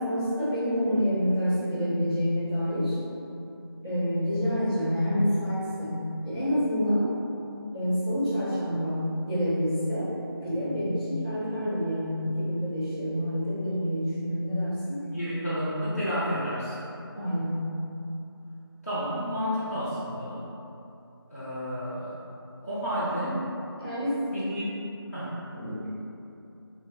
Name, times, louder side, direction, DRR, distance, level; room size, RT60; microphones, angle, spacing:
voice 1, 0.0-3.0 3.8-7.1 7.7-10.1 10.4-15.0 17.1-17.7 23.8-24.4 25.5-26.0, equal, 5° left, -19 dB, 1.4 m, -28 dB
voice 2, 15.0-16.8 18.8-20.5 21.3-22.2 22.6-23.4 24.3-24.8 25.1-25.4, equal, 35° left, -12 dB, 0.7 m, -31 dB
5.1 x 3.2 x 2.2 m, 2.8 s
figure-of-eight pair, 180°, 13 cm